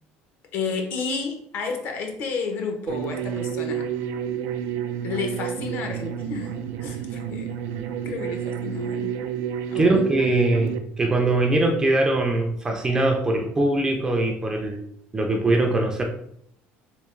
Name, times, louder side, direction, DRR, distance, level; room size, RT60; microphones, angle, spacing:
voice 1, 0.5-3.9 5.0-6.5 6.8-7.5 8.0-9.1 9.7-10.0, left 5 dB, 50° left, 3 dB, 0.7 m, -31 dB
sound 1, 2.9-10.8, right 8 dB, 90° right, 0.4 m, -29 dB
voice 2, 9.7-14.9 15.1-16.0, right 2 dB, 15° right, 2 dB, 0.4 m, -22 dB
3.5 x 2.8 x 3.1 m, 0.69 s
cardioid pair, 165°, 4 cm